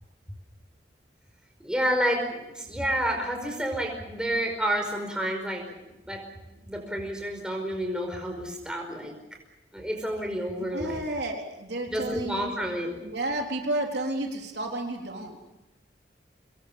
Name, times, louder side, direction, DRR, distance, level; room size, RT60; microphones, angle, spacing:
voice 1, 1.6-6.2 6.5-9.1 9.7-11.0 11.9-13.0, equal, 5° right, 2 dB, 5.0 m, -30 dB
voice 2, 10.7-12.7 13.0-15.4, right 1 dB, 65° right, 1 dB, 3.9 m, -31 dB
25.0 x 21.5 x 7.4 m, 0.99 s
head